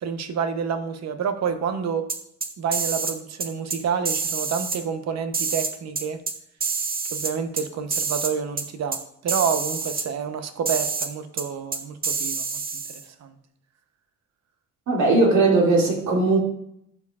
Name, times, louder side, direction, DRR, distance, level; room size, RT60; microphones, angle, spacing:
voice 1, 0.0-2.1 2.6-6.2 7.1-9.0 9.2-12.6 12.9-13.4, right 6 dB, 60° right, 8 dB, 0.8 m, -28 dB
sound 1, 2.1-3.1 3.4-3.8 4.1-4.8 5.3-6.3 6.6-7.6 7.9-8.3 8.6-8.7 8.9-9.0 9.3-10.0 10.7-11.1 11.4-11.5 11.7-13.0, right 5 dB, 30° right, 0.8 m, -27 dB
voice 2, 14.9-16.4, right 3 dB, 75° right, -2 dB, 2.3 m, -18 dB
11.5 x 4.8 x 2.4 m, 0.73 s
cardioid pair, 90°, 30 cm